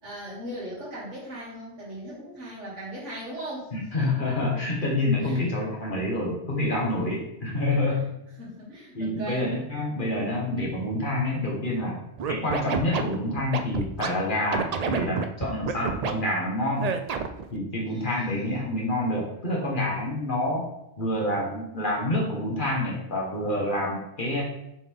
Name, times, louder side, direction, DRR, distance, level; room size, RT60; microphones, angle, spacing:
voice 1, 0.0-3.7 5.2-5.4 7.0-7.1 7.7-7.8 8.4-9.5 17.8-18.6, equal, 85° right, -8 dB, 3.0 m, -38 dB
voice 2, 3.7-8.1 9.0-12.0 12.3-16.9 17.5-20.7 21.0-24.4, left 1 dB, 45° left, -3 dB, 1.8 m, -27 dB
Scratching (performance technique), 12.2-14.1 14.5-16.1 16.8-17.4, right 6 dB, 60° right, 0.4 m, -28 dB
7.0 x 4.2 x 3.6 m, 0.81 s
omnidirectional pair, 1.2 m